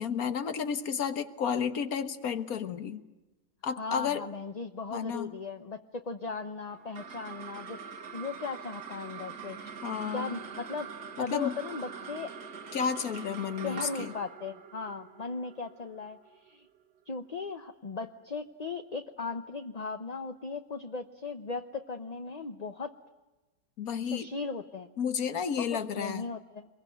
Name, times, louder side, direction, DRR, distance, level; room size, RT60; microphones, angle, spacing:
voice 1, 0.0-3.1 3.6-4.2 4.9-5.3 9.8-10.3 11.2-11.6 12.7-14.1 23.8-24.3 25.0-26.3, left 7 dB, 65° left, 10 dB, 1.7 m, -32 dB
voice 2, 3.8-5.8 6.0-7.8 8.1-9.6 10.1-10.9 11.2-12.3 13.6-16.7 17.1-22.9 24.0-24.9 25.6-26.7, left 4 dB, 30° left, 6 dB, 0.8 m, -37 dB
sound 1, 6.7-17.3, right 6 dB, 75° right, 2.0 m, -44 dB
25.5 x 22.5 x 9.2 m, 1.1 s
omnidirectional pair, 1.7 m